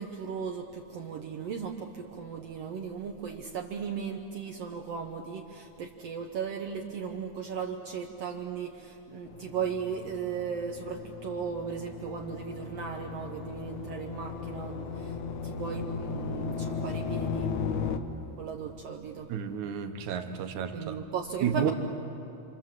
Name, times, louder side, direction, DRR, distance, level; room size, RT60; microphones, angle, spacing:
voice 1, 0.0-15.1 15.4-17.5 18.4-19.3 20.7-21.7, right 6 dB, 65° right, 3 dB, 2.1 m, -36 dB
sound 1, 9.3-18.0, left 5 dB, 80° left, 2.6 m, -36 dB
voice 2, 19.3-21.0 21.4-21.7, right 8 dB, 90° right, 7 dB, 2.6 m, -31 dB
29.5 x 25.5 x 7.6 m, 2.8 s
omnidirectional pair, 3.3 m